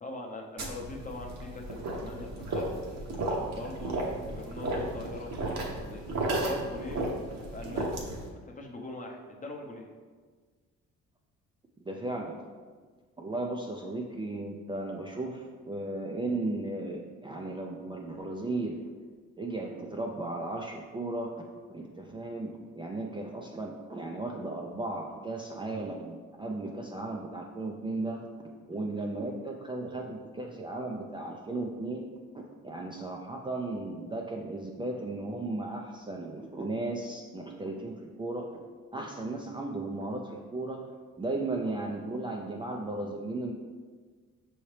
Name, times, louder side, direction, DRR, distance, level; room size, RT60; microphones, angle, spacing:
voice 1, 0.0-2.7 3.5-5.3 5.6-6.1 6.4-7.1 7.5-8.0 8.3-9.9, left 2 dB, 25° left, 1 dB, 0.7 m, -42 dB
sound 1, 0.6-8.3, right 2 dB, 60° right, 0.9 m, -34 dB
voice 2, 11.8-12.5 13.2-18.8 19.4-21.4 21.7-28.2 28.7-32.1 32.3-38.5 38.9-40.8 41.2-43.5, right 2 dB, 15° right, 0 dB, 0.4 m, -35 dB
5.6 x 2.8 x 3.2 m, 1.5 s
cardioid pair, 90°, 30 cm